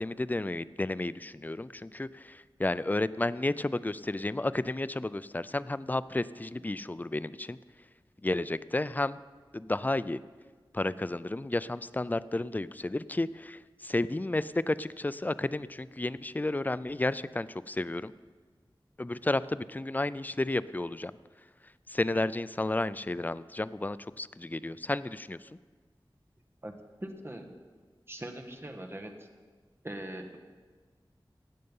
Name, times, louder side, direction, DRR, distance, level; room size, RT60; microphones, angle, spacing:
voice 1, 0.0-7.6 8.2-9.2 9.5-10.2 10.7-18.1 19.0-21.1 21.9-25.4, left 2 dB, 20° left, 16 dB, 0.3 m, -32 dB
voice 2, 27.0-27.5 28.1-29.3 29.8-30.4, right 1 dB, 30° right, 3 dB, 1.4 m, -41 dB
17.5 x 6.7 x 5.4 m, 1.5 s
wide cardioid pair, 50°, 9 cm